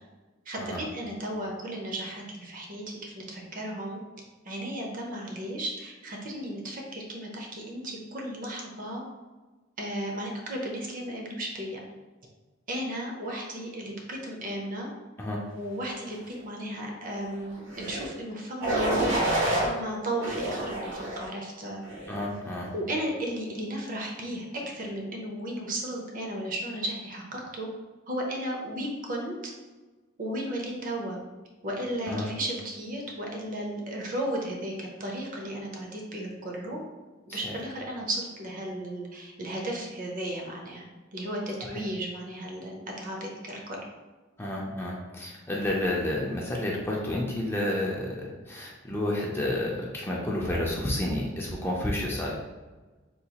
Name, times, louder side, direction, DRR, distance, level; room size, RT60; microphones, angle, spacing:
voice 1, 0.5-4.0 4.4-9.0 9.8-11.8 12.7-14.9 15.5-19.2 19.5-20.9 21.2-21.8 22.7-27.7 28.1-29.5 30.2-31.2 31.6-36.8 37.3-40.8 41.1-43.8, right 1 dB, 45° right, 0 dB, 0.6 m, -34 dB
sound 1, 17.7-18.1 18.6-19.7 20.2-21.2 21.8-22.2, right 1 dB, 75° right, 1.0 m, -28 dB
voice 2, 22.1-22.7 32.1-32.3 37.3-37.6 44.4-52.3, left 1 dB, 10° left, -3 dB, 0.4 m, -30 dB
3.7 x 2.4 x 2.8 m, 1.2 s
head